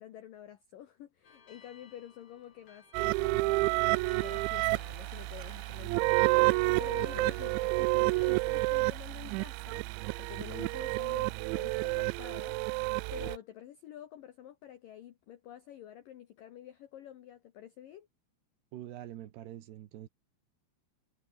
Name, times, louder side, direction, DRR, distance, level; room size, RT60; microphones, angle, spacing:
voice 1, 0.0-9.9 10.2-12.6 13.1-18.1, left 11 dB, 75° left, 2.0 m, -49 dB
sound 1, 1.2-8.4, left 6 dB, 35° left, 3.2 m, -57 dB
sound 2, 2.9-13.4, right 24 dB, 85° right, 2.7 m, -30 dB
voice 2, 18.7-20.1, right 12 dB, 65° right, 3.2 m, -45 dB
omnidirectional pair, 5.7 m